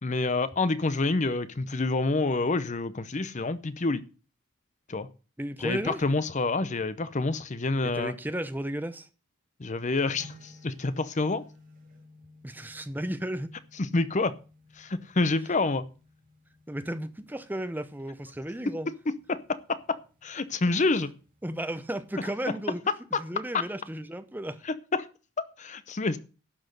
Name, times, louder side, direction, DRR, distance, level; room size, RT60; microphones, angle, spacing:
voice 1, 0.0-4.0 4.9-5.1 5.6-8.1 9.6-11.4 13.8-14.3 14.8-15.8 19.3-21.1 24.9-25.1 25.6-26.2, left 3 dB, 35° left, 0.7 m, -28 dB
voice 2, 5.4-6.0 7.8-9.1 12.4-13.5 16.7-18.9 21.4-22.8 23.2-24.6, right 1 dB, 10° right, 0.7 m, -34 dB
sound 1, 10.2-22.3, left 1 dB, 40° right, 2.6 m, -56 dB
12.0 x 6.2 x 7.8 m
head